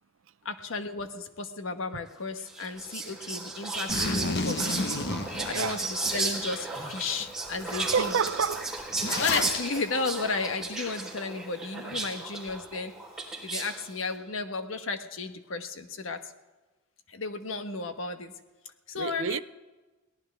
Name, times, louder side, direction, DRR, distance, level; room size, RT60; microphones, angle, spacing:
voice 1, 0.4-4.8 5.4-8.1 9.2-12.9 13.4-16.3 17.1-18.4 18.9-19.4, left 4 dB, 80° left, 1.3 m, -34 dB
Whispering, 2.5-13.9, right 3 dB, 5° right, 3.9 m, -34 dB
Zipper (clothing), 3.9-6.1 6.6-6.7 7.2-7.3 7.5-9.6, left 3 dB, 60° left, 1.2 m, -31 dB
voice 2, 5.5-5.9 7.7-8.8 19.0-19.4, right 6 dB, 75° right, 0.5 m, -29 dB
22.5 x 17.5 x 3.5 m
head